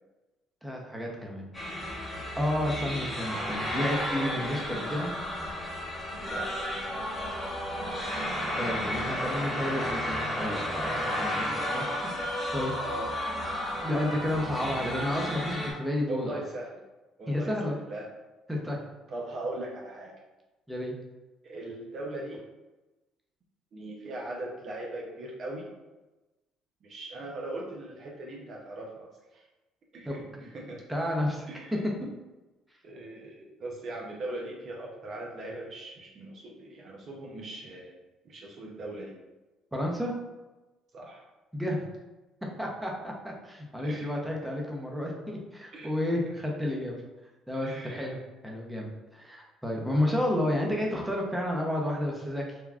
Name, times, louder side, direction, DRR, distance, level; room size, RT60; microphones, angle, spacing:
voice 1, 0.6-1.5 1.7-2.0 2.3-5.1 8.6-12.7 13.8-16.4 17.3-17.7 18.5-18.8 20.7-20.9 30.1-30.5 30.9-31.5 39.7-40.1 41.5-41.8 42.6-46.9 47.5-48.2 48.4-52.6, left 1 dB, 5° right, -1 dB, 0.7 m, -31 dB
sound 1, 1.5-15.7, equal, 15° left, 1.1 m, -33 dB
voice 2, 6.2-8.1 12.8-13.1 16.1-16.7 17.2-17.5 17.8-18.1 19.1-20.1 21.4-22.4 23.7-25.7 26.8-29.1 29.3-29.4 29.9-30.8 31.5-31.8 32.8-37.9 38.2-39.1 40.9-41.2 43.8-44.1 45.7-45.9 47.5-48.2, right 1 dB, 55° right, -2 dB, 0.6 m, -40 dB
3.4 x 2.2 x 2.4 m, 1.1 s
supercardioid pair, 70°, 0 cm